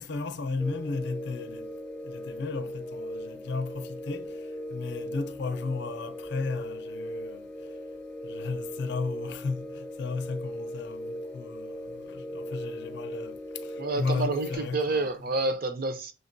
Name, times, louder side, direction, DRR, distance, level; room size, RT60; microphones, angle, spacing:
voice 1, 0.0-1.7 2.0-4.4 4.7-7.4 8.2-15.1, left 4 dB, 65° left, 0.5 m, -34 dB
sound 1, 0.6-14.6, equal, 5° left, 0.4 m, -38 dB
voice 2, 13.8-16.1, right 3 dB, 50° right, 0.6 m, -29 dB
6.3 x 2.1 x 2.6 m
head